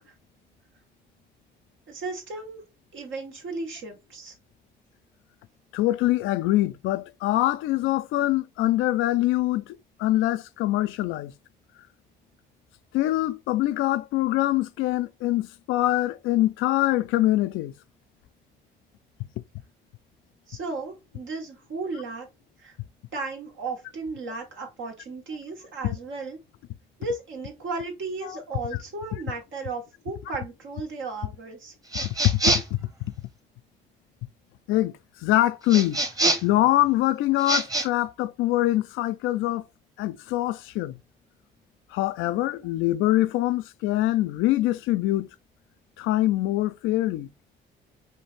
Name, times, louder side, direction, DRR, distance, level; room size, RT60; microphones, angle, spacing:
voice 1, 1.9-2.6 2.9-4.3 20.5-22.3 22.6-22.8 23.1-26.4 27.0-31.7, right 3 dB, 75° right, 2.1 m, -35 dB
voice 2, 5.7-11.3 12.9-17.7 28.2-28.4 32.0-32.8 34.7-34.9 35.2-36.0 36.4-39.6 40.0-41.0 41.9-45.3 46.0-47.3, left 15 dB, 90° left, 0.4 m, -24 dB
sound 1, 31.9-32.8 35.7-36.6 37.4-37.9, right 2 dB, 20° right, 1.1 m, -25 dB
5.3 x 2.8 x 3.4 m
cardioid pair, 70°, 20 cm